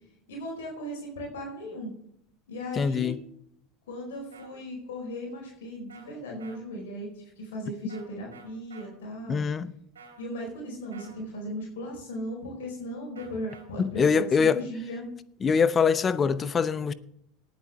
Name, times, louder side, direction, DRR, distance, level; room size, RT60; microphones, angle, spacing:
voice 1, 0.3-1.9 2.5-3.1 3.9-9.4 10.2-15.1, equal, 75° left, 4.7 m, -37 dB
voice 2, 2.8-3.2 9.3-9.7 13.8-14.6 15.4-16.9, left 6 dB, 30° left, 0.8 m, -23 dB
sound 1, 4.3-4.5 5.9-6.1 6.4-6.6 7.9-8.0 8.3-8.9 10.0-10.3 10.9-11.2 13.2-13.6, right 5 dB, 85° right, 3.1 m, -49 dB
18.5 x 8.5 x 3.6 m
hypercardioid pair, 75°, 0 cm